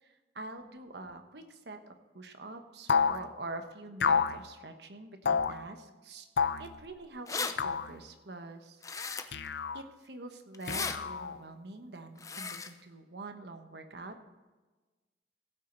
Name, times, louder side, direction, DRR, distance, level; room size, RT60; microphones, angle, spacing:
voice 1, 0.0-6.3 6.6-9.3 9.7-14.3, right 2 dB, 70° right, 6 dB, 1.2 m, -45 dB
sound 1, 2.9-3.2 4.0-4.4 5.3-5.6 6.4-6.7 7.6-7.9 9.3-9.8 10.7-11.4, left 6 dB, 65° left, 0.5 m, -28 dB
sound 2, 6.8-6.9 7.1-7.5 8.8-9.5 10.5-11.0 12.2-12.7, left 5 dB, 20° left, 0.6 m, -36 dB
15.5 x 8.7 x 4.0 m, 1.2 s
head